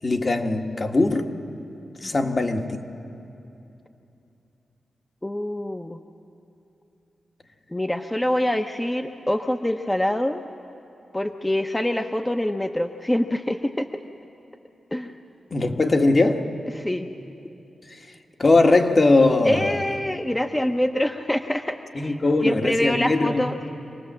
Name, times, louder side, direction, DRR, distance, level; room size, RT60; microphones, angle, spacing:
voice 1, 0.0-1.3 2.0-2.8 15.5-16.5 18.4-19.8 21.9-23.4, left 2 dB, 45° left, 4 dB, 1.7 m, -20 dB
voice 2, 2.0-2.3 5.2-6.0 7.7-10.4 11.1-14.0 14.9-15.1 16.7-17.1 19.4-23.7, left 1 dB, 15° left, 6 dB, 0.9 m, -25 dB
26.0 x 19.0 x 7.5 m, 2.9 s
cardioid pair, 50°, 0 cm